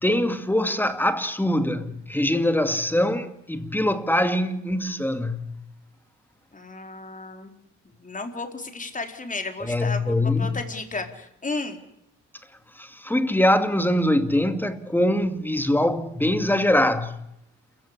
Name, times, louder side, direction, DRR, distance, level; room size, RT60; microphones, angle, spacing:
voice 1, 0.0-5.6 9.6-10.6 12.8-17.3, left 1 dB, 5° left, 2.4 m, -23 dB
voice 2, 6.5-7.5 7.9-11.8, left 3 dB, 25° left, 4.3 m, -33 dB
28.0 x 16.0 x 10.0 m
cardioid pair, 90°, 30 cm